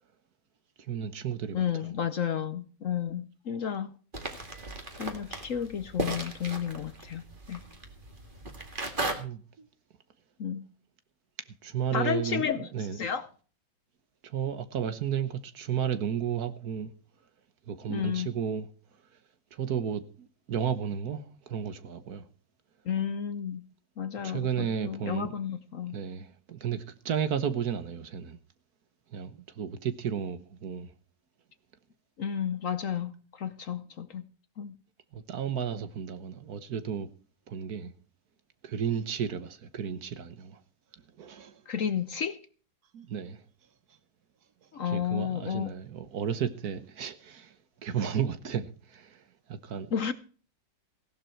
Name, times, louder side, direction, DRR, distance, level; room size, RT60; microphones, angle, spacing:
voice 1, 0.8-1.9 9.2-9.7 11.6-13.0 14.2-16.9 17.7-18.7 19.5-22.2 24.2-25.3 25.9-28.4 29.1-30.9 35.1-37.1 37.5-37.9 38.6-40.6 41.2-41.6 42.9-43.4 44.8-47.5 47.8-49.2 49.5-49.9, right 8 dB, 60° right, 1.5 m, -33 dB
voice 2, 1.5-3.9 5.0-7.6 10.4-10.6 11.9-13.3 17.9-18.3 22.8-23.6 24.0-26.0 32.2-34.2 34.6-34.7 41.7-42.4 44.7-45.7 49.9-50.1, left 8 dB, 55° left, 1.0 m, -32 dB
sound 1, 4.1-9.1, right 2 dB, 30° right, 2.2 m, -36 dB
16.5 x 11.5 x 4.5 m
omnidirectional pair, 1.9 m